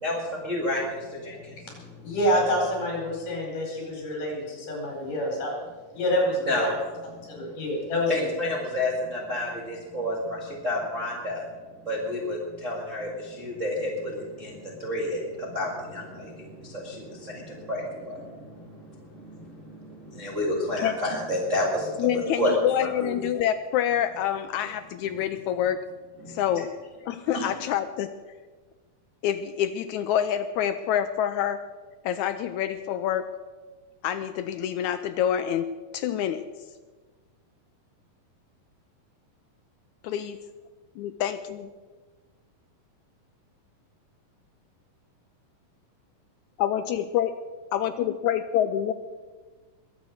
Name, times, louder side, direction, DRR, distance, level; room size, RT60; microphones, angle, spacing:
voice 1, 0.0-1.6 6.5-6.8 8.1-11.4 11.9-22.1 22.4-22.5 23.0-23.1 26.2-26.4 27.3-27.4, left 1 dB, 25° right, -3 dB, 1.9 m, -30 dB
voice 2, 2.0-5.6 5.9-6.7 7.3-8.3, equal, 65° left, 0 dB, 6.1 m, -27 dB
voice 3, 22.0-25.8 26.3-26.7 27.1-28.1 29.2-31.6 32.0-33.3 34.0-35.7 35.9-36.4 40.0-40.3 41.0-41.6 46.6-47.4 47.7-48.9, left 10 dB, 85° left, 10 dB, 1.7 m, -27 dB
21.5 x 8.3 x 6.5 m, 1.3 s
omnidirectional pair, 3.9 m